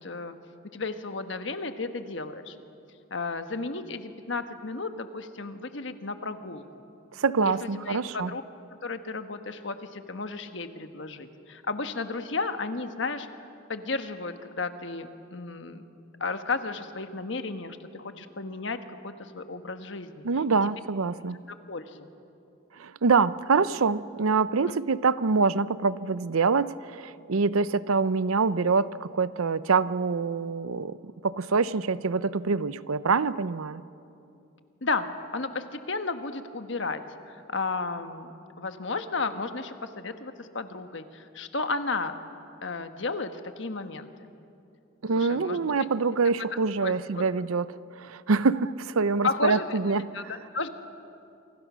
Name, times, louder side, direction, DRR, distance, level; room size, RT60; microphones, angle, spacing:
voice 1, 0.0-0.3 0.7-2.6 3.1-6.8 7.4-8.4 8.8-13.3 13.7-15.8 16.2-20.2 20.6-20.7 21.7-22.1 34.8-35.1 35.3-38.3 38.6-42.2 42.6-44.1 45.2-45.6 46.8-47.2 49.2-49.7 50.1-50.7, left 3 dB, 60° left, 8 dB, 1.3 m, -33 dB
voice 2, 7.1-8.3 20.2-21.4 22.8-31.0 31.2-33.8 45.0-50.1, right 4 dB, 85° right, 16 dB, 0.6 m, -25 dB
28.0 x 25.0 x 6.2 m, 2.7 s
head